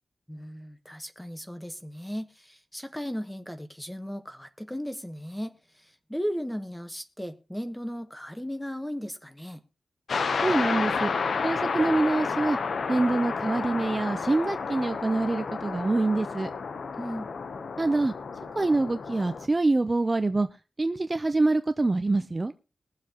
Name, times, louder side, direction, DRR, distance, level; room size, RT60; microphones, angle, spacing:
voice 1, 0.3-9.6 17.0-17.3, equal, 5° left, 1.0 m, -36 dB
sound 1, 10.1-19.5, left 5 dB, 70° left, 0.7 m, -31 dB
voice 2, 10.4-11.1 11.4-12.6 12.9-16.5 17.8-18.1 18.6-20.5 20.8-22.5, right 2 dB, 25° right, 0.5 m, -25 dB
21.5 x 7.4 x 2.9 m
wide cardioid pair, 130°, 0 cm